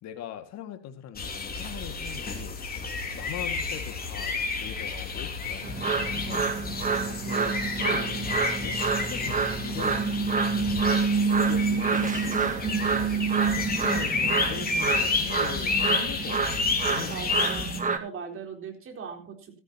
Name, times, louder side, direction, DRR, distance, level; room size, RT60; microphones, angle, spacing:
voice 1, 0.0-2.6 3.1-8.8 9.1-11.0 11.4-13.3 13.5-17.5, left 10 dB, 50° left, 10 dB, 2.0 m, -41 dB
sound 1, 1.2-17.8, left 4 dB, 25° left, 3.2 m, -31 dB
sound 2, 5.6-18.0, right 5 dB, 20° right, 1.7 m, -27 dB
voice 2, 17.1-19.6, right 6 dB, 35° right, 3 dB, 3.8 m, -40 dB
15.5 x 14.0 x 2.9 m, 0.31 s
hypercardioid pair, 75°, 35 cm